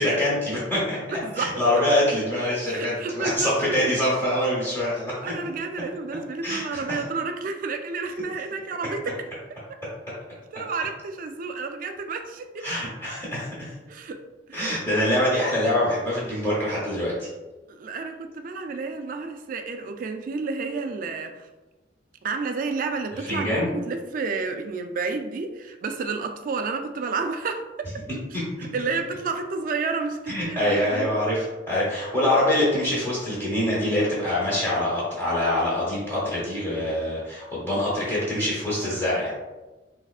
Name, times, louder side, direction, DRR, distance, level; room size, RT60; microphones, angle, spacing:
voice 1, 0.0-1.0 1.4-5.3 6.4-7.0 12.6-13.7 14.5-17.3 23.1-23.7 30.3-39.3, left 1 dB, 15° left, -9 dB, 1.0 m, -24 dB
voice 2, 1.1-1.9 2.7-4.0 5.2-9.2 9.7-9.8 10.5-12.7 13.9-14.2 14.5-14.8 17.7-21.5 22.2-27.9 28.3-31.1, right 4 dB, 50° right, 6 dB, 0.3 m, -31 dB
3.5 x 3.2 x 2.4 m, 1.1 s
head